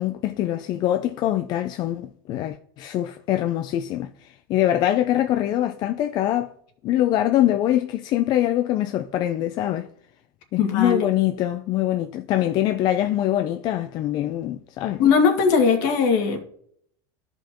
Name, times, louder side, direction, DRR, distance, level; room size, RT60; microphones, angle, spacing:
voice 1, 0.0-6.5 6.8-9.9 10.5-15.0, left 13 dB, 35° left, 0.4 m, -23 dB
voice 2, 10.6-11.1 15.0-16.4, left 6 dB, 60° left, 2.2 m, -19 dB
14.0 x 5.2 x 3.0 m
supercardioid pair, 160°, 12 cm